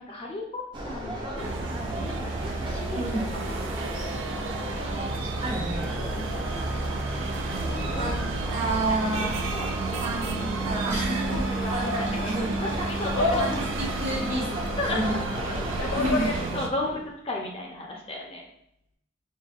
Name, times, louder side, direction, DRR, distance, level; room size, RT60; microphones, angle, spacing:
voice 1, 0.0-3.1 3.4-4.4 5.1-5.4 5.8-9.1 9.3-9.7 11.3-11.7 12.4-13.6 14.8-18.4, left 2 dB, 30° left, -1 dB, 0.5 m, -36 dB
sound 1, 0.7-16.5, equal, 25° right, 0.6 m, -35 dB
sound 2, 1.4-16.7, right 3 dB, 70° right, 0.4 m, -32 dB
voice 2, 3.0-3.3 5.4-5.9 7.9-9.3 9.8-12.6 13.4-15.2 15.9-16.3, right 1 dB, 40° right, -10 dB, 1.1 m, -30 dB
sound 3, 10.6-16.9, left 2 dB, 80° left, 0.6 m, -33 dB
5.0 x 2.5 x 2.4 m, 0.76 s
head